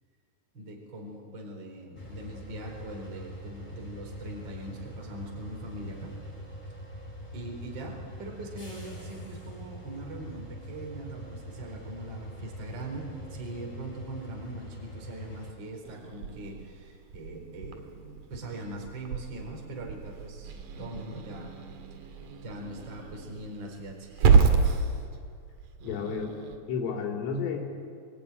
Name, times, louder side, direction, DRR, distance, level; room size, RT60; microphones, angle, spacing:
voice 1, 0.5-6.2 7.0-7.1 7.3-21.5 22.4-24.4, right 1 dB, 25° right, 1 dB, 4.3 m, -41 dB
sound 1, 1.9-15.5, equal, 10° left, 4.3 m, -43 dB
Growling / Hiss, 15.8-26.6, right 5 dB, 55° right, 2.6 m, -29 dB
voice 2, 25.8-26.4 26.7-27.7, left 6 dB, 75° left, 1 dB, 5.7 m, -31 dB
26.5 x 21.0 x 10.0 m, 2.3 s
omnidirectional pair, 5.9 m